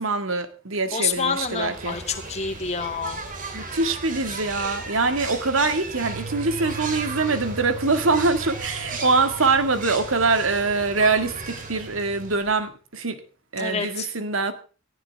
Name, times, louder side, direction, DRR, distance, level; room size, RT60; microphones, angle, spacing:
voice 1, 0.0-2.0 3.5-13.2 13.5-14.5, right 3 dB, 85° right, 1.9 m, -24 dB
voice 2, 0.9-3.2 13.6-14.1, left 5 dB, 35° left, 2.4 m, -28 dB
sound 1, 1.1-12.7, right 3 dB, 40° right, 3.0 m, -36 dB
Bass guitar, 6.0-12.3, right 6 dB, 65° right, 6.9 m, -41 dB
18.0 x 14.5 x 3.5 m
head